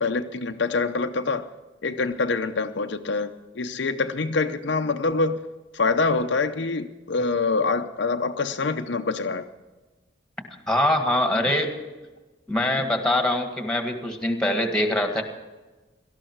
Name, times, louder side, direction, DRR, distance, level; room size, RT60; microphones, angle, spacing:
voice 1, 0.0-1.5 1.8-5.4 5.7-9.4, left 4 dB, 70° left, 7 dB, 0.7 m, -25 dB
voice 2, 10.7-11.7 12.5-15.2, left 1 dB, 5° left, 4 dB, 1.8 m, -23 dB
18.0 x 13.0 x 4.6 m, 1.2 s
head